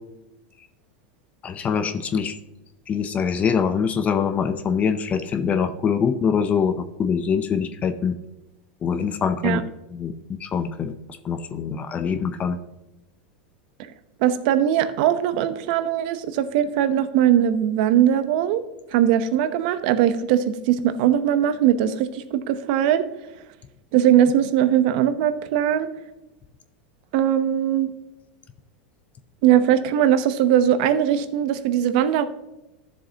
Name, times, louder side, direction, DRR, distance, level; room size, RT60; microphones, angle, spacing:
voice 1, 1.4-2.4 2.9-6.7 7.0-8.1 8.8-9.6 9.9-11.0 11.2-12.6, left 6 dB, 25° left, 10 dB, 0.6 m, -24 dB
voice 2, 14.2-18.6 18.9-23.0 23.9-25.9 27.1-27.9 29.4-32.3, right 10 dB, 60° right, 12 dB, 0.9 m, -20 dB
12.5 x 7.2 x 2.9 m, 0.98 s
supercardioid pair, 125°, 5 cm